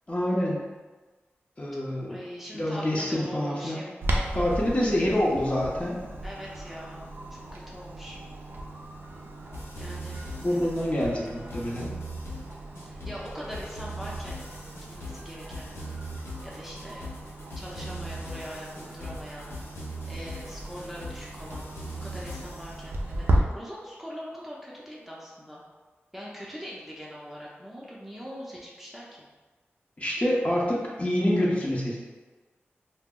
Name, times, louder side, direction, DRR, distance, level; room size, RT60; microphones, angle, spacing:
voice 1, 0.1-0.7 1.6-2.2 2.5-3.8 4.3-6.0 10.4-11.9 30.0-32.0, left 1 dB, 30° left, -5 dB, 0.7 m, -26 dB
voice 2, 2.1-4.5 4.8-4.9 6.2-7.0 7.3-8.2 9.8-10.9 12.8-14.5 14.9-15.7 16.4-17.1 17.6-19.5 20.1-25.6 26.1-29.2, equal, 5° right, -6 dB, 0.6 m, -42 dB
Clock, 4.0-23.4, right 1 dB, 60° right, 0.4 m, -36 dB
sound 1, 9.5-22.8, equal, 70° left, 0.6 m, -40 dB
2.2 x 2.1 x 3.6 m, 1.3 s
cardioid pair, 40°, 4 cm